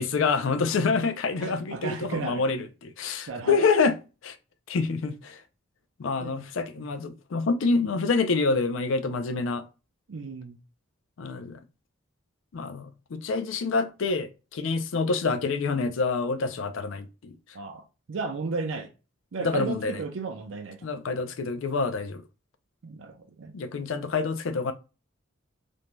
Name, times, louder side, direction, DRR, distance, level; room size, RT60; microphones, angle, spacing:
voice 1, 0.0-4.0 4.2-4.3 4.7-5.4 6.0-9.6 11.2-11.6 12.5-17.3 19.4-20.0 20.8-22.2 23.5-24.7, left 4 dB, 70° left, 0.4 m, -27 dB
voice 2, 1.4-2.4 3.3-3.7 6.2-6.4 6.8-6.9 10.1-10.6 17.5-18.9 19.3-20.9 22.8-23.5, right 4 dB, 70° right, 0.5 m, -34 dB
2.6 x 2.2 x 3.0 m
head